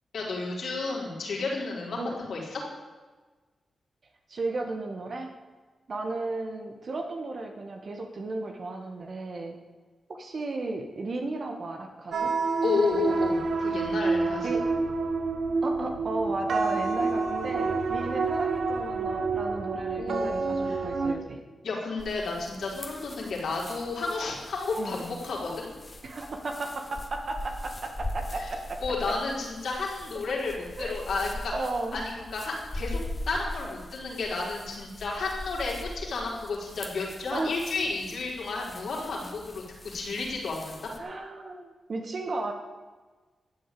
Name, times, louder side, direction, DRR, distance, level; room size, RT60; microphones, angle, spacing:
voice 1, 0.1-2.6 12.6-14.5 19.9-20.3 20.6-20.8 21.6-25.7 28.4-28.5 28.8-31.5 31.9-33.0 33.3-40.9, left 3 dB, 75° left, -2 dB, 4.5 m, -32 dB
voice 2, 4.3-5.3 5.9-9.5 10.1-12.3 14.4-14.6 15.6-21.4 24.8-25.0 26.0-28.8 30.8-31.0 31.5-32.0 37.3-37.5 41.0-42.5, right 2 dB, 55° right, 3 dB, 1.9 m, -34 dB
sound 1, 12.1-21.1, right 4 dB, 70° right, 1.5 m, -28 dB
sound 2, 22.0-41.0, left 1 dB, 30° left, 2.0 m, -41 dB
12.5 x 8.2 x 8.6 m, 1.3 s
cardioid pair, 65°, 0 cm